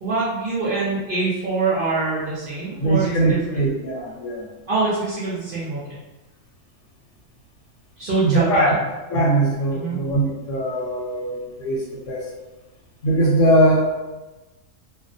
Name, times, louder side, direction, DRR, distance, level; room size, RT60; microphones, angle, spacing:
voice 1, 0.0-3.6 4.7-5.8 8.0-8.8 9.7-10.0, right 3 dB, 55° right, -8 dB, 0.6 m, -24 dB
voice 2, 2.8-4.4 8.2-8.7 9.1-12.3 13.0-13.8, right 1 dB, 70° left, -4 dB, 1.0 m, -20 dB
2.3 x 2.0 x 2.6 m, 1.1 s
omnidirectional pair, 1.4 m